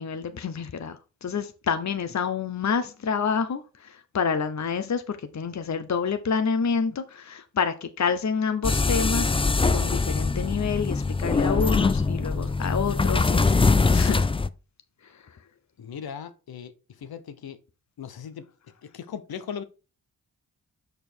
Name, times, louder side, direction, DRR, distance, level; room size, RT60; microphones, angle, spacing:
voice 1, 0.0-9.3 9.7-13.5 13.9-14.3, left 6 dB, 45° left, 0.8 m, -28 dB
sound 1, 8.6-14.5, left 4 dB, 15° left, 0.4 m, -23 dB
voice 2, 15.8-16.7 17.0-17.6 18.0-18.4 18.9-19.6, left 7 dB, 75° left, 0.9 m, -37 dB
6.7 x 5.1 x 4.4 m
cardioid pair, 45°, 37 cm